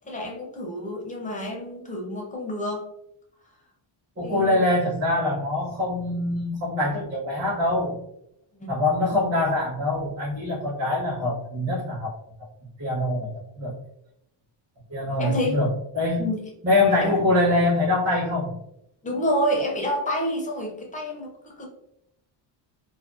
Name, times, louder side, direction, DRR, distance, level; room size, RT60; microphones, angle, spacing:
voice 1, 0.0-2.9 4.2-4.6 8.6-8.7 15.2-15.6 16.2-16.4 17.0-17.1 19.0-21.7, equal, 20° left, -1 dB, 0.5 m, -28 dB
voice 2, 4.2-8.0 8.7-12.1 12.8-13.7 14.9-16.2 16.6-18.5, left 2 dB, 30° right, -8 dB, 0.8 m, -24 dB
2.5 x 2.1 x 2.3 m, 0.78 s
cardioid pair, 145°, 47 cm